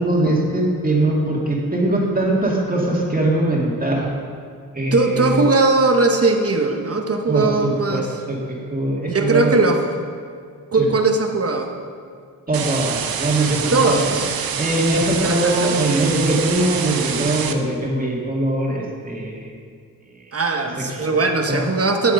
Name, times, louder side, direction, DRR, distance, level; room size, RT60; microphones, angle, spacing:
voice 1, 0.0-4.1 4.7-5.4 7.3-9.5 10.7-10.9 12.5-14.2 14.6-19.5 20.1-20.3 20.8-21.2 21.5-21.7, right 1 dB, 25° right, -2 dB, 2.0 m, -21 dB
voice 2, 4.9-8.1 9.1-10.0 10.7-11.7 13.7-14.4 15.2-15.7 20.3-22.1, right 3 dB, 45° right, 4 dB, 0.9 m, -19 dB
sound 1, 12.5-17.5, right 7 dB, 90° right, 0.8 m, -26 dB
12.0 x 7.2 x 5.2 m, 2.1 s
wide cardioid pair, 110°, 34 cm